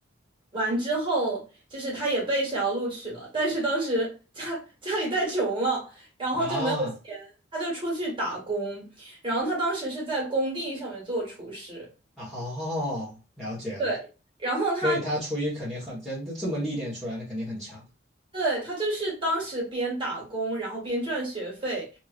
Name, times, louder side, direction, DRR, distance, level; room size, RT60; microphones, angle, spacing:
voice 1, 0.5-1.4 1.7-11.8 13.8-14.0 14.4-15.0 18.3-21.8, right 2 dB, 25° right, 1.6 m, -29 dB
voice 2, 6.3-6.9 12.2-13.9 14.8-17.8, equal, ahead, 1.2 m, -31 dB
3.0 x 2.8 x 2.5 m
head